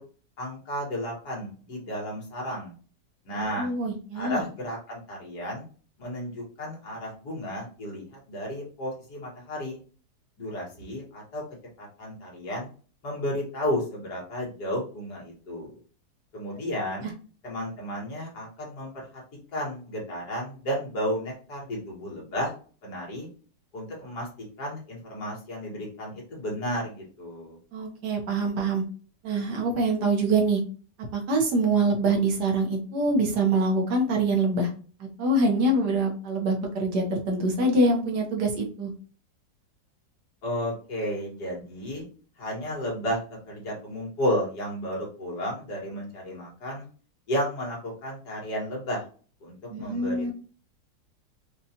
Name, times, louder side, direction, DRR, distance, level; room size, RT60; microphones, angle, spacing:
voice 1, 0.4-2.7 3.3-3.7 4.1-5.6 6.0-9.8 10.4-11.4 11.8-12.7 13.0-15.8 16.3-17.1 17.4-19.2 19.5-22.5 22.8-23.3 23.7-27.6 40.4-42.0 42.4-43.2 43.5-46.9 47.3-49.0 49.4-50.3, equal, 65° left, -3 dB, 2.1 m, -33 dB
voice 2, 3.3-4.4 27.7-28.8 29.2-30.6 31.0-34.7 35.2-38.9 49.7-50.3, right 2 dB, 70° right, 1 dB, 1.5 m, -25 dB
5.3 x 2.4 x 2.8 m, 0.40 s
omnidirectional pair, 1.9 m